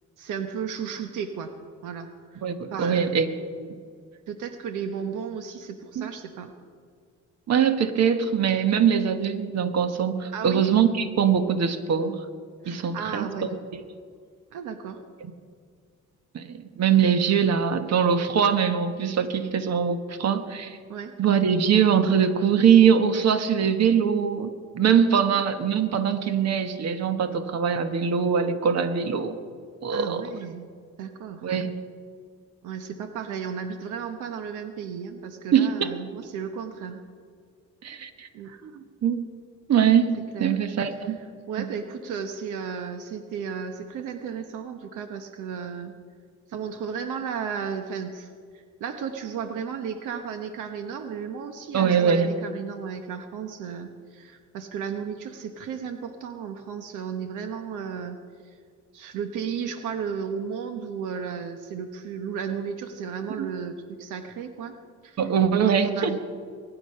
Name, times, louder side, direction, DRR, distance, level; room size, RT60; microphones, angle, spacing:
voice 1, 0.2-1.5 1.8-2.4 2.7-3.1 4.3-6.5 10.3-10.6 12.6-13.5 14.5-15.0 20.9-21.1 25.1-25.4 29.9-30.7 31.0-31.5 32.6-37.0 38.3-38.5 40.3-40.5 41.0-41.1 41.5-45.9 46.5-58.2 58.4-58.5 58.9-64.8 65.0-65.2 65.6-66.2, right 7 dB, 90° right, 7 dB, 1.0 m, -34 dB
voice 2, 2.4-3.3 3.6-3.7 5.9-6.1 7.5-12.2 12.7-13.8 16.3-20.8 21.2-29.4 29.8-30.2 31.4-31.7 35.5-35.9 37.8-38.3 38.6-39.2 39.7-41.2 41.6-41.7 51.7-52.3 63.4-63.5 65.2-66.2, right 7 dB, 60° right, 9 dB, 1.3 m, -22 dB
22.5 x 10.0 x 5.6 m, 2.1 s
cardioid pair, 90°, 30 cm